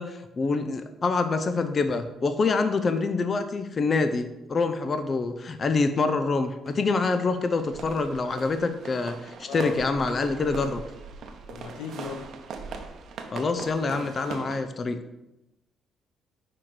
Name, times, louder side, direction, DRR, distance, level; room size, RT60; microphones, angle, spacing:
voice 1, 0.0-10.8 13.3-15.0, left 3 dB, 40° left, 9 dB, 0.6 m, -26 dB
sound 1, 6.7-14.6, right 5 dB, 65° right, 0.8 m, -40 dB
voice 2, 9.5-9.8 11.5-12.3, left 6 dB, 85° left, 6 dB, 0.7 m, -37 dB
6.1 x 4.5 x 4.7 m, 0.92 s
supercardioid pair, 80°, 0 cm